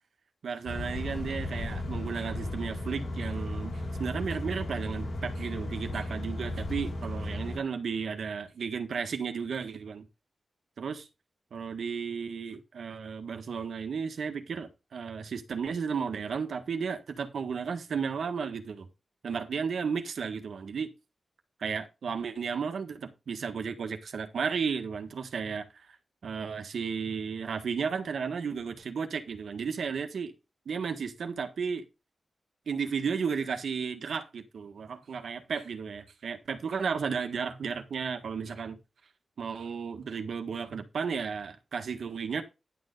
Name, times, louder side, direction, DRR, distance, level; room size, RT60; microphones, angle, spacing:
voice 1, 0.4-10.1 10.8-11.0 11.5-18.9 19.2-20.9 21.6-25.9 26.2-30.3 30.6-31.8 32.7-38.8 39.4-42.4, right 6 dB, 85° right, 1.6 m, -34 dB
sound 1, 0.7-7.6, left 1 dB, 70° left, 5.3 m, -35 dB
11.0 x 6.7 x 4.0 m
wide cardioid pair, 110°, 0 cm